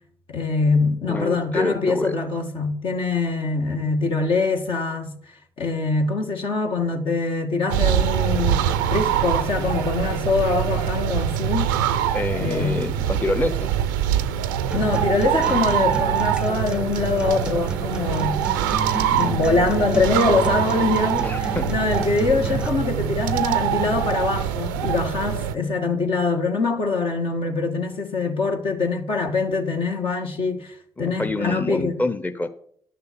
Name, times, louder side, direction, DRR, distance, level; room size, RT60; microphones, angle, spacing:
voice 1, 0.3-5.1 5.6-11.8 12.4-12.9 14.7-18.4 19.0-31.9, left 3 dB, 60° left, 1.7 m, -24 dB
voice 2, 1.1-2.1 12.1-13.7 21.2-21.7 31.0-32.5, left 2 dB, 15° left, 0.9 m, -26 dB
sound 1, 7.7-25.5, right 10 dB, 85° right, 0.5 m, -24 dB
Acoustic guitar, 14.7-22.7, right 1 dB, 10° right, 0.6 m, -33 dB
11.5 x 6.8 x 6.9 m
hypercardioid pair, 40°, 10 cm